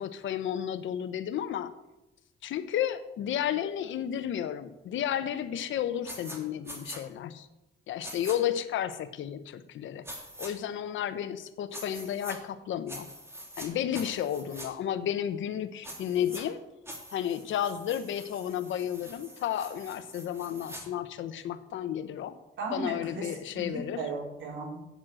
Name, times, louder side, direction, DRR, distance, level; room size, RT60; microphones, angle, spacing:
voice 1, 0.0-1.7 2.4-7.5 7.9-10.1 10.4-13.1 13.6-16.6 17.1-22.4 22.7-24.0, left 10 dB, 75° left, 12 dB, 0.9 m, -32 dB
sound 1, 6.0-6.4 6.6-7.0 8.0-8.4 10.0-10.5 11.7-12.4 12.9-13.7 13.9-14.7 15.8-16.4 16.9-20.8, equal, 10° right, 2.9 m, -44 dB
voice 2, 22.6-23.3 23.5-24.8, right 3 dB, 75° right, -2 dB, 4.3 m, -35 dB
9.1 x 7.5 x 7.7 m, 0.94 s
cardioid pair, 90°, 20 cm